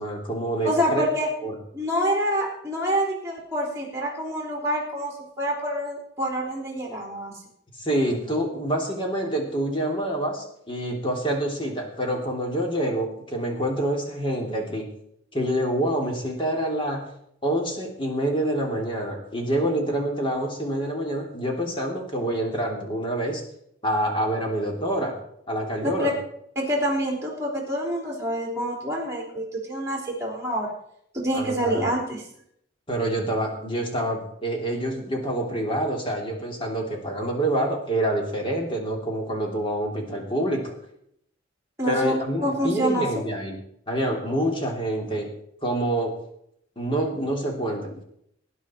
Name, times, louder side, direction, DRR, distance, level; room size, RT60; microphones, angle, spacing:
voice 1, 0.0-1.1 1.4-1.6 7.8-14.9 15.3-17.1 17.4-23.4 23.8-25.1 25.5-26.1 31.4-31.9 32.9-40.7 41.8-43.6 43.9-45.3 45.6-46.1 46.8-48.0, right 1 dB, 25° left, 0 dB, 3.1 m, -27 dB
voice 2, 0.6-1.3 1.7-7.3 25.8-26.1 26.6-30.7 31.1-32.2 41.8-43.3, equal, 15° right, -2 dB, 3.5 m, -27 dB
19.0 x 9.8 x 4.5 m, 0.73 s
head